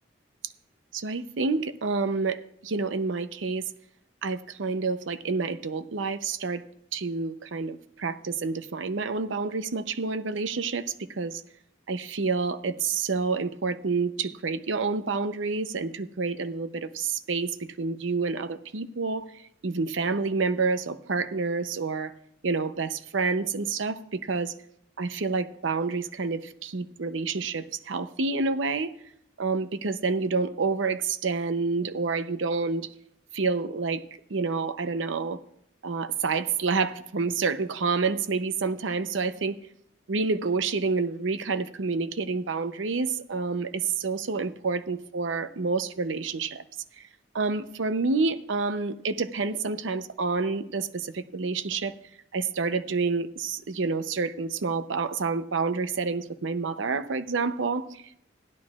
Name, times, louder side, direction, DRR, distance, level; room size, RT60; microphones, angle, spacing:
voice 1, 0.9-3.6 4.2-6.6 6.9-11.4 11.9-19.3 19.6-22.1 22.4-24.5 25.0-28.9 29.4-32.9 33.3-34.0 34.3-35.4 35.8-39.6 40.1-46.6 47.0-47.1 47.3-51.9 52.3-58.2, right 4 dB, 90° right, 10 dB, 0.7 m, -28 dB
16.0 x 11.5 x 2.4 m, 0.73 s
head